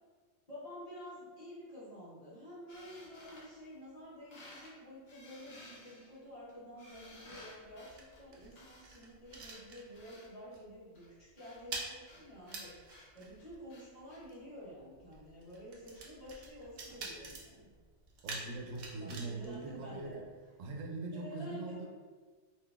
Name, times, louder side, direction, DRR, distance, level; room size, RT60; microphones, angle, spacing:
voice 1, 0.5-17.7 19.0-20.2 21.1-21.9, equal, 35° left, -10 dB, 1.0 m, -50 dB
sound 1, 2.7-4.0 4.3-4.7 5.1-10.3 10.9-14.2, left 1 dB, 70° left, 1.1 m, -56 dB
sound 2, 6.9-10.3 10.5-10.8 11.1-20.5, right 3 dB, 60° right, 0.7 m, -48 dB
voice 2, 18.2-20.3 20.6-21.9, right 3 dB, 85° right, 1 dB, 0.9 m, -42 dB
3.6 x 2.7 x 2.3 m, 1.5 s
omnidirectional pair, 1.3 m